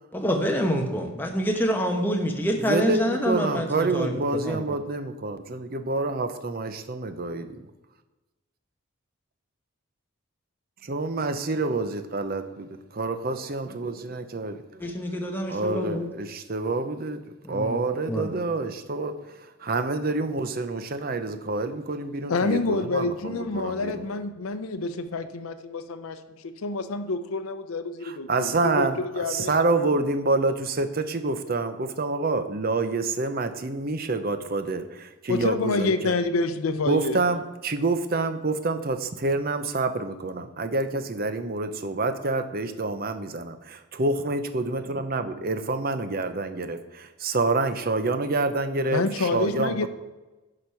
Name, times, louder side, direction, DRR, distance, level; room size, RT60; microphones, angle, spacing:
voice 1, 0.1-4.1 4.4-4.7 14.8-16.1 17.4-17.8 18.1-18.3, equal, 10° left, 2 dB, 1.0 m, -26 dB
voice 2, 2.6-7.6 10.8-14.9 15.5-17.2 17.5-19.3 19.6-24.1 28.0-36.2 36.9-49.9, right 3 dB, 45° right, 9 dB, 0.7 m, -27 dB
voice 3, 22.3-29.5 29.9-30.0 35.3-37.2 48.9-49.9, left 3 dB, 85° left, 9 dB, 0.6 m, -28 dB
10.5 x 5.0 x 5.7 m, 1.1 s
head